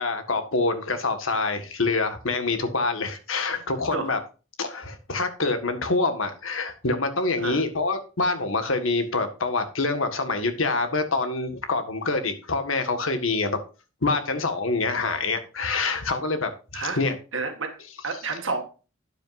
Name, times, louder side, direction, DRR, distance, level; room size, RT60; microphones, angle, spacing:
voice 1, 0.0-4.2 4.6-13.6 14.0-17.1, left 3 dB, 80° left, 8 dB, 1.7 m, -26 dB
voice 2, 17.3-18.6, right 4 dB, 75° right, 4 dB, 1.8 m, -30 dB
12.5 x 9.1 x 2.6 m, 0.33 s
head